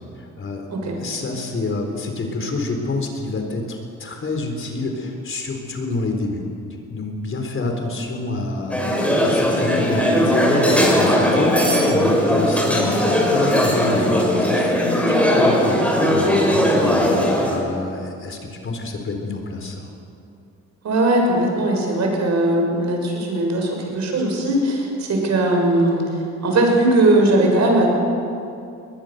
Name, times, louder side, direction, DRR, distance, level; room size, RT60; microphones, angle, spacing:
voice 1, 0.2-0.7 1.0-6.4 6.9-11.6 11.9-13.0 13.3-14.8 15.1-17.1 17.5-19.9, left 2 dB, 45° left, 3 dB, 4.1 m, -27 dB
sound 1, 8.7-17.6, equal, 5° left, 6.5 m, -18 dB
voice 2, 20.8-26.1 26.4-27.9, right 1 dB, 65° right, 1 dB, 6.4 m, -19 dB
21.0 x 21.0 x 6.7 m, 2.6 s
cardioid pair, 90°, 30 cm